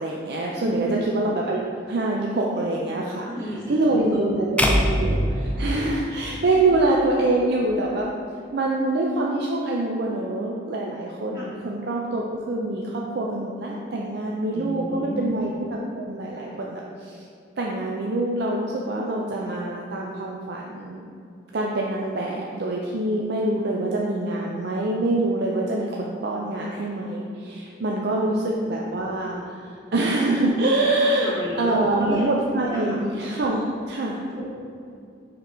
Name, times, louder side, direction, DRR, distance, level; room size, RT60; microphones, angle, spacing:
voice 1, 0.0-3.3 3.7-8.1 8.5-17.3 17.6-21.1 21.5-34.2, right 2 dB, 55° right, -2 dB, 0.5 m, -25 dB
voice 2, 0.6-1.0 3.1-4.6 11.3-11.6 14.5-15.2 28.1-28.4 31.0-33.0 34.3-34.5, right 1 dB, 15° right, -9 dB, 0.9 m, -32 dB
sound 1, 4.6-6.8, equal, 5° left, 0.3 m, -23 dB
5.7 x 3.8 x 4.3 m, 2.5 s
head